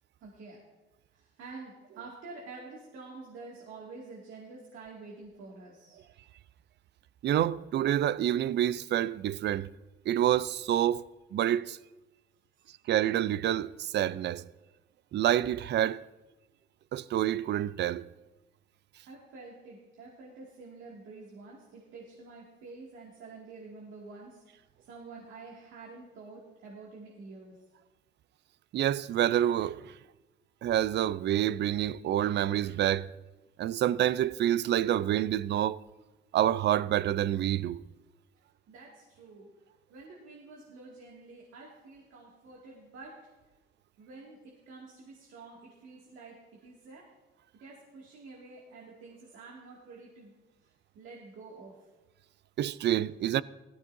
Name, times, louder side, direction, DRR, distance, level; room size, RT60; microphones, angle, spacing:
voice 1, 0.2-0.6 1.1-6.0 12.6-12.7 19.1-24.4 24.9-27.5 38.7-39.5 39.9-43.2 44.0-47.1 47.5-50.3 50.9-51.8, right 3 dB, 85° right, 2.2 m, -48 dB
voice 2, 7.2-9.7 10.1-11.1 11.3-11.8 12.9-14.4 15.1-16.0 16.9-18.0 28.7-29.9 30.6-33.1 33.6-35.8 36.3-37.8 52.6-53.4, right 11 dB, 60° right, 0.4 m, -27 dB
16.0 x 13.5 x 2.7 m
cardioid pair, 90°, 20 cm